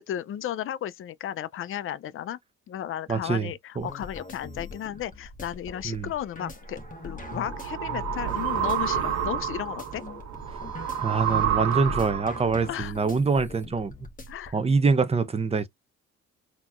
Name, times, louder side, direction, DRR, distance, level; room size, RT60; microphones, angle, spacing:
voice 1, 0.0-2.4 2.7-6.8 7.0-10.0 12.7-12.9 14.3-14.6, left 11 dB, 45° left, 0.4 m, -34 dB
voice 2, 3.1-3.9 5.8-6.1 11.0-13.9 14.5-15.7, right 4 dB, 20° right, 0.6 m, -25 dB
sound 1, 3.8-14.5, left 3 dB, 25° left, 1.3 m, -41 dB
sound 2, 6.8-12.5, right 9 dB, 65° right, 1.3 m, -29 dB
4.0 x 2.9 x 2.4 m
cardioid pair, 90°, 30 cm